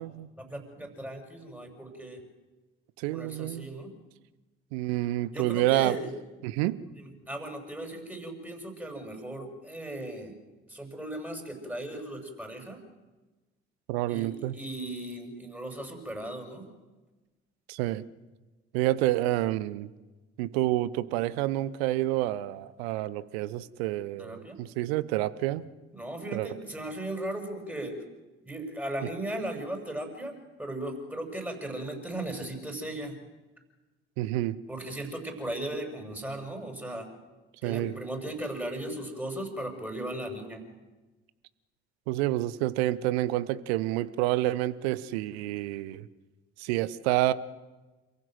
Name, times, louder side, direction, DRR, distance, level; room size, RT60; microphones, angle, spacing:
voice 1, 0.3-2.2 3.1-3.9 5.3-6.1 6.9-10.3 10.7-12.8 14.1-16.6 24.2-24.6 25.9-28.0 28.4-33.2 34.7-37.1 37.6-40.6, right 1 dB, 5° right, 4 dB, 6.8 m, -37 dB
voice 2, 3.0-3.7 4.7-6.0 6.4-6.8 13.9-14.5 17.7-18.0 18.7-19.9 20.4-25.6 26.3-26.5 34.2-34.6 37.6-38.0 42.1-46.1 46.6-47.3, right 16 dB, 65° right, 16 dB, 1.0 m, -28 dB
28.5 x 15.5 x 7.9 m, 1.2 s
figure-of-eight pair, 50°, 34 cm